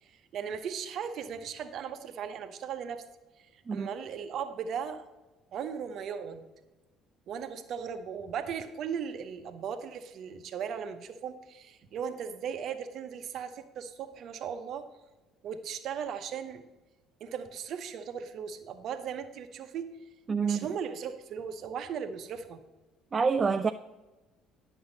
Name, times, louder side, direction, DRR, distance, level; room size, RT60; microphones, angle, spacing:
voice 1, 0.0-3.0 3.4-5.0 5.5-6.5 7.3-14.9 15.4-16.6 17.2-19.9 20.4-22.6, right 7 dB, 55° right, 0.8 m, -37 dB
voice 2, 20.3-20.6 23.1-23.7, right 5 dB, 35° right, 0.3 m, -26 dB
10.5 x 6.2 x 3.9 m
figure-of-eight pair, 55°, 0 cm